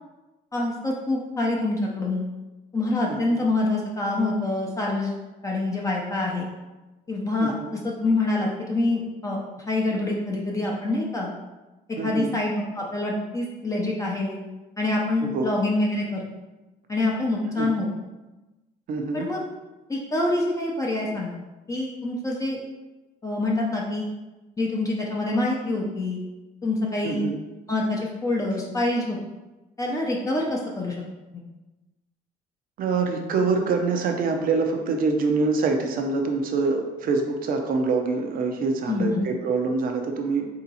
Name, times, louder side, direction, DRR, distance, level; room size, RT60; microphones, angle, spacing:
voice 1, 0.5-2.2 2.7-5.1 5.4-6.5 7.1-7.5 7.8-11.3 12.0-14.4 14.8-16.2 16.9-17.9 19.1-19.4 19.9-21.4 21.7-22.6 23.2-24.1 24.6-26.2 26.6-27.3 27.7-29.2 29.8-31.0 31.3-31.4 38.9-39.2, left 2 dB, 20° left, -2 dB, 0.6 m, -26 dB
voice 2, 7.4-7.7 12.0-12.3 15.2-15.5 17.6-17.7 18.9-19.3 27.0-27.4 32.8-40.5, right 4 dB, 60° right, 3 dB, 0.7 m, -25 dB
3.6 x 2.8 x 4.1 m, 1.1 s
cardioid pair, 110°, 17 cm